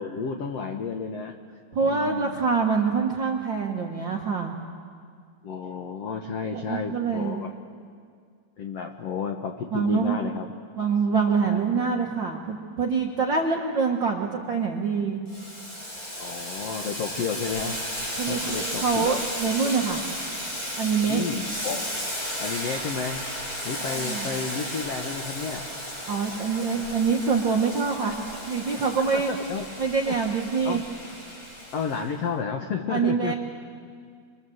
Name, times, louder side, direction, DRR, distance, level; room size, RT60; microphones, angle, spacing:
voice 1, 0.0-1.3 1.8-2.4 5.4-7.5 8.6-10.5 11.5-11.6 13.4-13.5 16.2-17.8 18.3-19.2 21.0-21.8 22.4-23.2 23.6-25.6 29.1-29.6 30.1-30.2 30.6-30.8 31.7-33.3, left 5 dB, 90° left, 4 dB, 1.4 m, -31 dB
voice 2, 1.7-4.6 6.5-7.4 9.7-10.2 10.8-15.2 18.2-20.0 20.8-21.2 23.8-24.3 26.1-28.2 28.5-29.3 29.8-30.8 32.9-33.3, right 5 dB, 80° right, -1 dB, 1.0 m, -25 dB
Boiling, 15.3-32.1, equal, 25° left, 3.6 m, -34 dB
27.0 x 22.5 x 7.9 m, 2.1 s
omnidirectional pair, 4.5 m